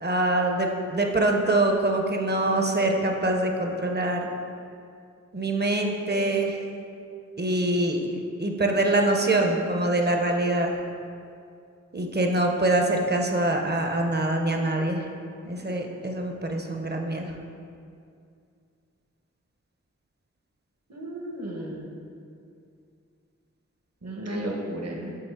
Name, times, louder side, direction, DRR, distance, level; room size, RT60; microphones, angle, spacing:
voice 1, 0.0-4.3 5.3-6.6 7.4-8.1 8.4-10.7 11.9-15.0 15.4-17.3, right 2 dB, 35° right, 2 dB, 0.6 m, -24 dB
voice 2, 20.9-21.9 24.0-25.2, right 1 dB, 60° right, -1 dB, 0.9 m, -33 dB
6.7 x 3.1 x 4.6 m, 2.4 s
wide cardioid pair, 50°, 29 cm